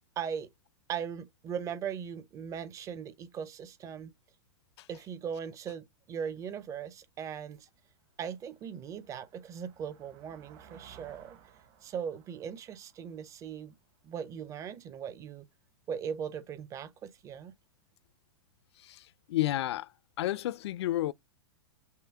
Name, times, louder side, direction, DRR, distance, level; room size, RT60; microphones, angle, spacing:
voice 1, 0.2-0.5 0.9-4.1 4.9-7.7 8.2-11.4 11.8-13.7 14.0-15.5 15.9-17.5, right 7 dB, 20° right, 0.5 m, -39 dB
sound 1, 7.1-7.2 7.7-14.3, right 8 dB, 40° right, 1.0 m, -59 dB
voice 2, 18.8-19.9 20.2-21.1, left 15 dB, 70° left, 0.4 m, -31 dB
5.6 x 2.0 x 3.4 m
hypercardioid pair, 135°, 14 cm